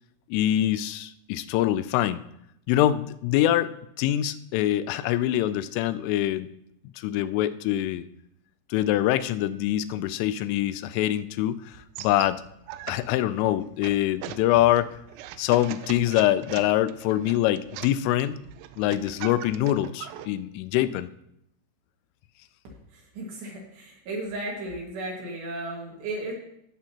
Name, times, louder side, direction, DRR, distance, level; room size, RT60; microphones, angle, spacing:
voice 1, 0.3-2.2 2.7-6.5 7.0-8.1 8.7-11.7 12.0-12.4 12.9-14.9 15.4-18.4 18.8-21.1, left 13 dB, 85° left, 13 dB, 3.0 m, -24 dB
sound 1, 11.7-20.3, right 12 dB, 90° right, 3.3 m, -41 dB
voice 2, 22.9-26.3, right 2 dB, 65° right, -3 dB, 3.7 m, -35 dB
18.5 x 7.7 x 2.9 m, 0.76 s
omnidirectional pair, 5.9 m